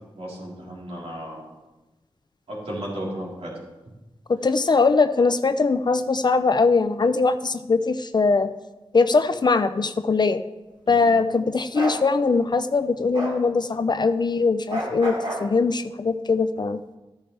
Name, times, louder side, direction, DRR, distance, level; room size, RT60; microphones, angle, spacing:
voice 1, 0.2-1.5 2.5-3.6 10.9-11.1, right 1 dB, 80° right, -5 dB, 3.7 m, -34 dB
voice 2, 4.3-8.5 8.9-10.4 10.9-16.8, left 4 dB, 45° left, 10 dB, 0.5 m, -21 dB
Bark, 11.7-12.0 13.1-13.4 14.7-15.5, equal, 50° right, 3.2 m, -29 dB
13.0 x 11.0 x 3.3 m, 1.1 s
wide cardioid pair, 80°, 10 cm